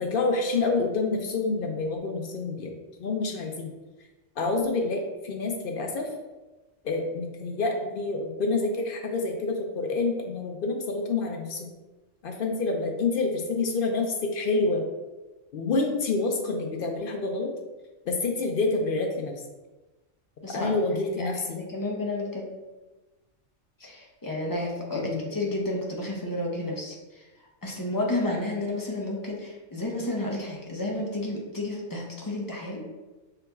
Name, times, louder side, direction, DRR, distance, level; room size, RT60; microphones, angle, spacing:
voice 1, 0.0-2.7 3.0-3.7 4.4-6.1 6.8-11.7 12.2-14.8 15.5-17.5 18.1-19.3 20.5-21.6 24.9-25.3, left 3 dB, 60° left, 3 dB, 0.6 m, -27 dB
voice 2, 21.2-22.5 23.8-32.8, left 1 dB, 20° left, -2 dB, 0.6 m, -31 dB
5.8 x 3.8 x 2.3 m, 1.1 s
omnidirectional pair, 1.3 m